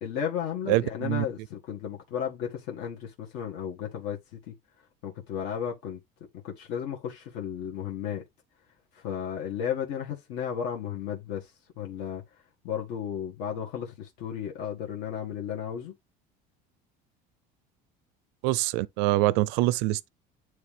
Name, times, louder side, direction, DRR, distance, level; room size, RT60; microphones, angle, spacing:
voice 1, 0.0-4.6 5.0-6.0 6.4-8.2 8.9-12.2 12.6-15.9, left 8 dB, 65° left, 1.8 m, -34 dB
voice 2, 0.7-1.2 18.4-20.1, right 18 dB, 85° right, 0.5 m, -25 dB
9.5 x 3.3 x 3.4 m
cardioid pair, 155°, 19 cm